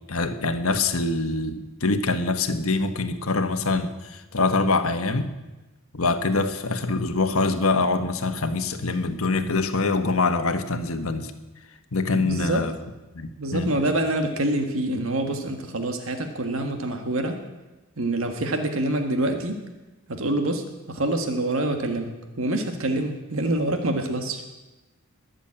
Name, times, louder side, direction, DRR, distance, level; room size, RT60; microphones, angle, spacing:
voice 1, 0.1-5.3 5.9-11.3 11.9-12.7 13.1-13.7, left 3 dB, 75° left, 8 dB, 1.3 m, -24 dB
voice 2, 12.1-12.6 13.4-17.4 18.0-19.6 20.1-24.4, right 1 dB, 65° right, 5 dB, 1.6 m, -26 dB
20.5 x 7.3 x 8.8 m, 1.1 s
head